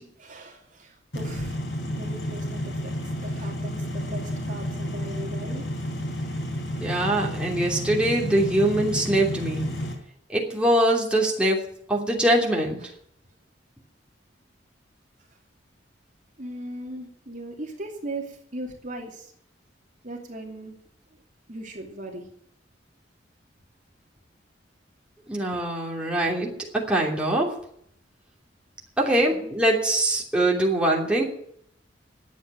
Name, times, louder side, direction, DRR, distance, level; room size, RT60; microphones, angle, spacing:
voice 1, 0.2-1.6 1.8-5.6 11.4-11.5 16.4-19.3 20.0-20.8 21.5-22.3 29.1-29.6, right 1 dB, 45° right, 2 dB, 2.6 m, -38 dB
sound 1, 1.1-9.9, equal, 75° left, 3.8 m, -31 dB
voice 2, 6.8-9.6 10.3-11.6 11.9-12.8 25.3-27.5 29.0-31.2, right 1 dB, 5° right, -3 dB, 3.0 m, -23 dB
11.5 x 8.5 x 9.9 m, 0.68 s
head